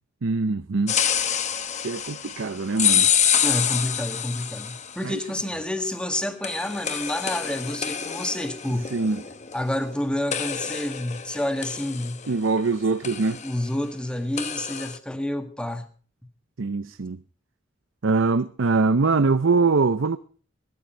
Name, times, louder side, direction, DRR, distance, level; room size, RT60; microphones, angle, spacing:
voice 1, 0.2-1.0 1.8-3.1 5.0-5.2 8.9-9.2 12.3-13.4 16.6-17.2 18.0-20.2, right 4 dB, 75° right, 0.6 m, -23 dB
sound 1, 0.9-5.1 6.4-10.0 10.3-12.7 13.0-13.6 14.4-15.0, left 9 dB, 35° left, 1.0 m, -27 dB
voice 2, 3.4-8.9 9.5-12.3 13.3-15.8, left 1 dB, 5° left, 1.6 m, -29 dB
18.0 x 13.0 x 4.5 m
head